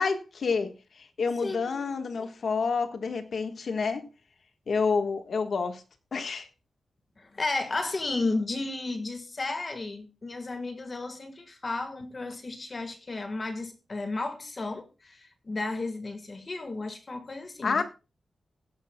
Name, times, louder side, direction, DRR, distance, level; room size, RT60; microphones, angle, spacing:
voice 1, 0.0-4.1 4.7-5.8 6.1-6.5 17.6-17.8, left 5 dB, 55° left, 1.3 m, -29 dB
voice 2, 1.4-1.8 7.2-17.8, left 3 dB, 30° left, 1.5 m, -33 dB
16.5 x 10.5 x 2.2 m
wide cardioid pair, 165°, 0 cm